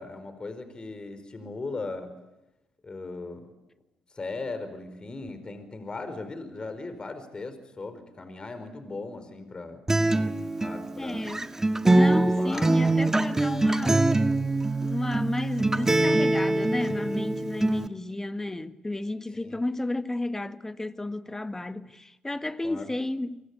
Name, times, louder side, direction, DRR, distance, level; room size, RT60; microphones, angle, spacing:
voice 1, 0.0-2.1 2.8-3.5 4.1-9.8 10.6-11.3 12.0-12.9 19.4-19.6 22.6-22.9, left 3 dB, 30° left, 4.8 m, -38 dB
Acoustic guitar, 9.9-17.9, right 2 dB, 15° right, 1.6 m, -24 dB
voice 2, 11.0-11.5 11.8-14.1 14.8-23.4, left 2 dB, 15° left, 1.7 m, -32 dB
27.5 x 25.5 x 8.6 m
hypercardioid pair, 50°, 3 cm